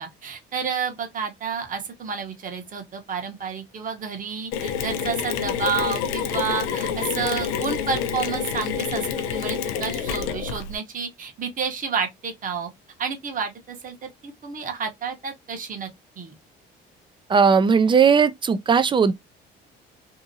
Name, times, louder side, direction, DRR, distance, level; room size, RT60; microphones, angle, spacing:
voice 1, 0.0-12.7 13.0-15.9 16.2-16.4, right 6 dB, 40° right, 1.0 m, -30 dB
Mechanisms, 4.5-10.8, left 7 dB, 90° left, 0.5 m, -27 dB
voice 2, 17.3-19.1, right 6 dB, 25° right, 0.4 m, -17 dB
2.7 x 2.6 x 2.6 m
supercardioid pair, 85°, 21 cm